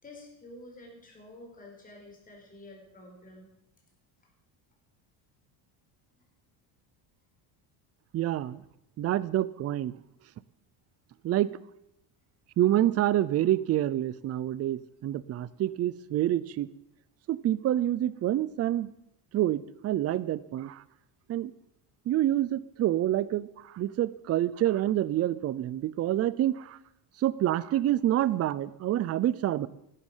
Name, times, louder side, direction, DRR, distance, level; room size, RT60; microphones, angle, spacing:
voice 1, 0.0-3.5 6.1-6.3, left 1 dB, 15° left, 0 dB, 5.0 m, -49 dB
voice 2, 8.1-8.6 9.0-9.9 11.2-11.5 12.6-16.7 17.3-18.9 19.3-20.8 21.3-21.5 22.1-26.8 27.2-29.7, right 13 dB, 30° right, 18 dB, 0.5 m, -27 dB
16.0 x 12.0 x 7.3 m, 0.82 s
cardioid pair, 165°, 47 cm